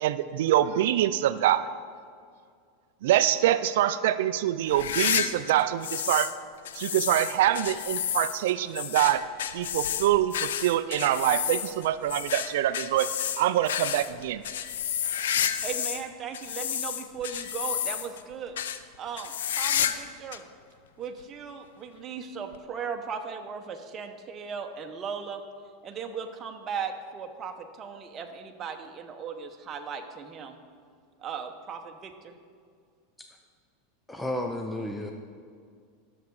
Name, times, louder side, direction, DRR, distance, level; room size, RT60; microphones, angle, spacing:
voice 1, 0.0-1.7 3.0-6.3 6.8-9.2 9.5-13.1 13.4-14.4, right 12 dB, 75° right, 14 dB, 0.4 m, -25 dB
sound 1, 4.7-6.4 6.7-16.0 16.3-18.2 18.6-18.8 19.2-20.1 20.3-20.4 21.2-21.3 22.5-22.6, left 9 dB, 90° left, 0.5 m, -30 dB
voice 2, 15.3-18.6 19.0-20.5 21.0-25.4 25.8-30.6 31.2-32.3, right 6 dB, 30° right, 4 dB, 0.9 m, -37 dB
voice 3, 34.1-35.1, left 1 dB, 5° left, 3 dB, 0.6 m, -32 dB
12.0 x 7.1 x 4.8 m, 2.1 s
supercardioid pair, 125°, 0 cm